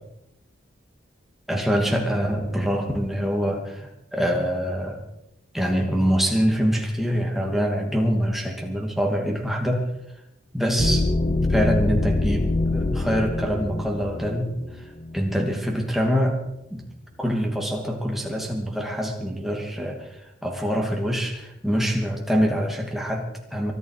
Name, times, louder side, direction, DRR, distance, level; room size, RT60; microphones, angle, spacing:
voice 1, 1.5-5.0 5.5-9.9 10.5-11.1 11.5-14.9 15.1-16.4 16.7-16.9 17.2-23.7, equal, ahead, 0 dB, 2.6 m, -25 dB
sound 1, 10.8-15.3, left 2 dB, 30° left, 0.9 m, -24 dB
24.0 x 11.0 x 5.0 m, 0.85 s
head